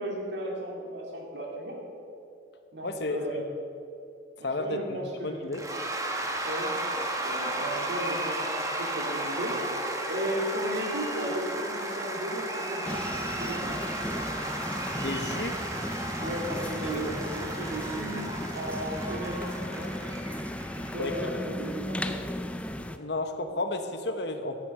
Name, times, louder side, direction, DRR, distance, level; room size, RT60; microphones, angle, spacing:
voice 1, 0.0-1.8 2.7-3.4 4.4-5.4 6.4-13.8 14.1-14.3 16.2-20.0 20.7-22.3, right 1 dB, 65° right, -1 dB, 2.5 m, -35 dB
voice 2, 2.8-3.4 4.4-5.6 15.0-15.6 16.9-17.0 20.9-21.1 22.9-24.6, left 2 dB, 60° left, 7 dB, 1.1 m, -32 dB
Cheering / Applause / Crowd, 5.5-21.2, right 1 dB, 15° right, 1.1 m, -34 dB
sound 1, 12.8-23.0, left 1 dB, 5° left, 0.4 m, -36 dB
13.0 x 8.3 x 6.7 m, 2.6 s
head